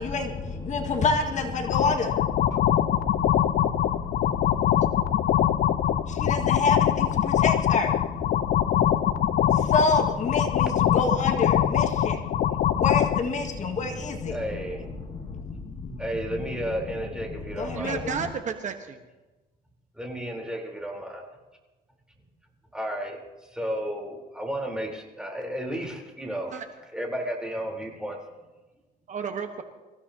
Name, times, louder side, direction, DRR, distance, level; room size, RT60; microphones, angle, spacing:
voice 1, 0.0-18.3, left 4 dB, 45° left, 3 dB, 1.9 m, -29 dB
sound 1, 1.6-13.2, left 11 dB, 60° left, 0.6 m, -23 dB
voice 2, 14.3-14.9 16.0-18.0 19.9-21.3 22.7-23.2 23.5-26.6 26.9-28.2, equal, 5° right, 0 dB, 3.9 m, -33 dB
voice 3, 17.7-19.0 26.5-26.7 29.1-29.6, right 6 dB, 45° right, 6 dB, 1.3 m, -32 dB
25.0 x 15.5 x 2.9 m, 1.2 s
cardioid pair, 110°, 17 cm